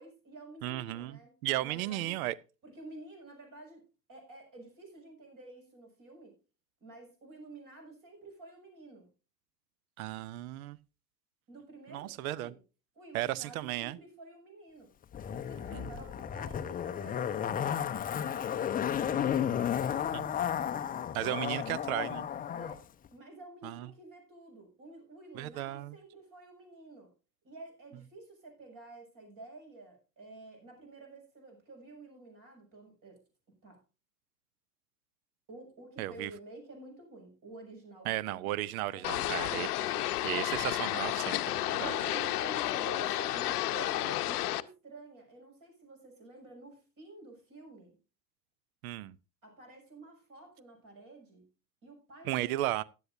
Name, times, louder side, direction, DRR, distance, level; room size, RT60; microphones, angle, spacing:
voice 1, 0.0-2.2 2.6-3.8 4.1-6.4 6.8-9.1 11.5-12.6 12.9-14.9 15.3-20.6 22.5-27.1 27.4-33.2 33.6-33.8 35.5-38.5 38.8-40.2 41.8-48.0 49.4-51.4 51.8-52.7, right 2 dB, 40° right, 6.5 m, -50 dB
voice 2, 0.6-2.4 10.0-10.8 11.9-12.5 13.1-14.0 15.7-15.9 20.1-20.3 21.1-22.3 23.6-23.9 25.4-26.0 36.0-36.3 38.0-39.7 40.2-41.9 48.8-49.2 52.2-52.8, right 15 dB, 60° right, 0.7 m, -35 dB
Zipper (clothing), 15.1-22.8 23.0-23.1, left 9 dB, 20° left, 0.6 m, -33 dB
sound 1, 39.0-44.6, left 15 dB, 65° left, 0.8 m, -32 dB
15.5 x 11.0 x 2.7 m
figure-of-eight pair, 75°, 48 cm